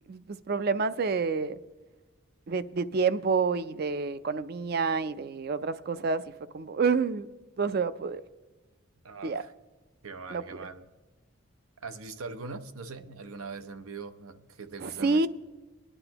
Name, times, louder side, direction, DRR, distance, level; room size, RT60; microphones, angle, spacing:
voice 1, 0.1-1.6 2.5-6.2 6.5-7.3 7.6-8.2 9.2-9.4 10.3-10.4 14.8-15.3, right 4 dB, 45° right, 0.4 m, -28 dB
voice 2, 9.0-9.5 10.0-10.9 11.8-15.3, right 4 dB, 85° right, 0.8 m, -41 dB
23.5 x 9.9 x 2.9 m
head